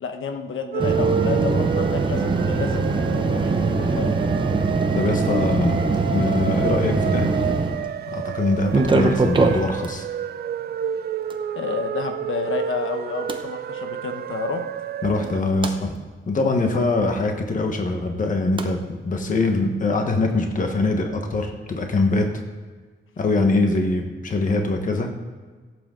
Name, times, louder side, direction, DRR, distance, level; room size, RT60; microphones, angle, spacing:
voice 1, 0.0-4.2 11.5-14.6, left 5 dB, 75° left, 6 dB, 1.1 m, -30 dB
sound 1, 0.7-15.4, right 8 dB, 50° right, 0.4 m, -30 dB
sound 2, 0.8-7.9 8.6-9.9 11.3-11.4 13.3-13.4 15.2-15.7 18.6-18.7, right 3 dB, 25° right, 0.8 m, -22 dB
voice 2, 4.9-5.8 6.1-7.3 8.1-10.0 15.0-15.9 16.3-22.3 23.2-25.1, left 2 dB, 40° left, 4 dB, 1.2 m, -23 dB
16.5 x 8.0 x 3.8 m, 1.4 s
wide cardioid pair, 170°, 21 cm